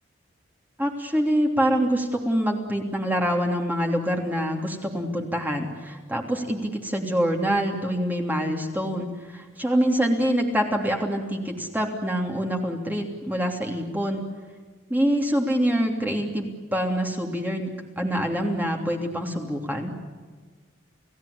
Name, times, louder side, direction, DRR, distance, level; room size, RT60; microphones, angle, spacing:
voice 1, 0.8-14.3 14.9-19.9, equal, 10° right, 1 dB, 3.1 m, -25 dB
29.5 x 17.5 x 8.5 m, 1.5 s
head